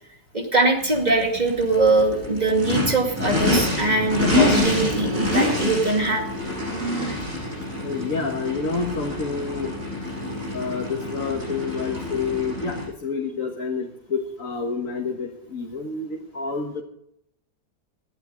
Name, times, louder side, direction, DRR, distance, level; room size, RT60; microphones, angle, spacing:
voice 1, 0.3-6.3, right 2 dB, 25° right, 2 dB, 2.3 m, -22 dB
Race car auto racing / Idling / Accelerating revving vroom, 0.8-12.8, left 2 dB, 50° right, 7.5 m, -26 dB
voice 2, 7.8-9.7 10.5-16.8, left 4 dB, 50° left, 0 dB, 1.8 m, -28 dB
18.0 x 12.0 x 3.9 m, 0.75 s
omnidirectional pair, 1.8 m